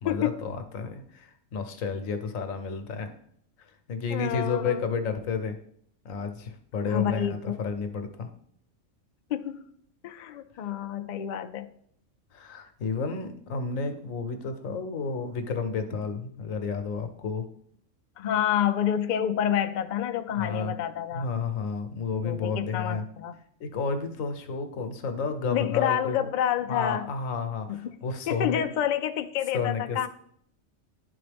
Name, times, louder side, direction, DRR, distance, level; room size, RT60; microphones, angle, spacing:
voice 1, 0.0-3.1 3.6-5.6 6.0-8.3 12.3-17.5 20.4-20.7 21.1-23.0 23.6-26.2 26.7-28.7 29.5-30.0, left 5 dB, 90° left, 7 dB, 1.2 m, -31 dB
voice 2, 4.1-4.8 6.9-7.6 9.3-9.6 10.0-11.7 18.2-21.3 22.2-23.4 25.5-27.1 27.7-27.9 28.3-30.1, left 10 dB, 65° left, 7 dB, 0.4 m, -28 dB
10.5 x 3.9 x 3.4 m, 0.67 s
omnidirectional pair, 1.3 m